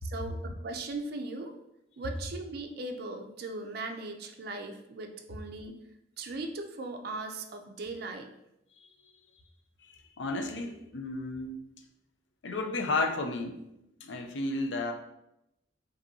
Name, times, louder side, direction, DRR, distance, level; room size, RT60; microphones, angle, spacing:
voice 1, 0.0-1.5 2.0-5.8 6.2-8.3, right 2 dB, 55° right, 4 dB, 0.4 m, -38 dB
voice 2, 9.8-11.6 12.4-13.6 14.0-14.9, left 2 dB, 70° left, 5 dB, 0.5 m, -33 dB
5.0 x 2.7 x 2.7 m, 0.85 s
head